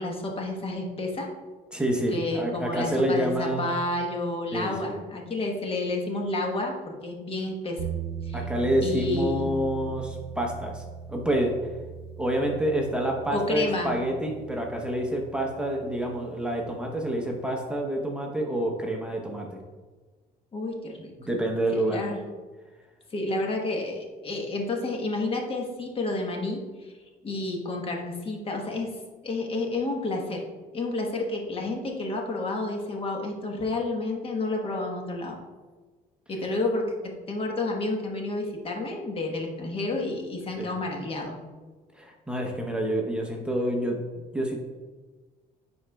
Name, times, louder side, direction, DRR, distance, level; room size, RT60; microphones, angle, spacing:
voice 1, 0.0-1.3 2.1-7.8 8.2-8.4 8.8-9.5 13.3-14.0 20.5-21.1 21.7-22.2 23.1-26.9 27.2-28.9 29.2-30.4 30.7-35.4 36.3-41.4, left 2 dB, 35° left, 1 dB, 1.2 m, -30 dB
voice 2, 1.7-3.6 4.5-5.0 8.3-10.8 11.1-11.5 12.2-19.6 21.3-22.0 40.6-40.7 41.9-44.0 44.3-44.6, right 1 dB, 5° right, 0 dB, 0.8 m, -28 dB
sound 1, 7.8-16.7, right 7 dB, 70° right, 0.9 m, -39 dB
10.0 x 4.3 x 2.3 m, 1.3 s
cardioid pair, 110°, 17 cm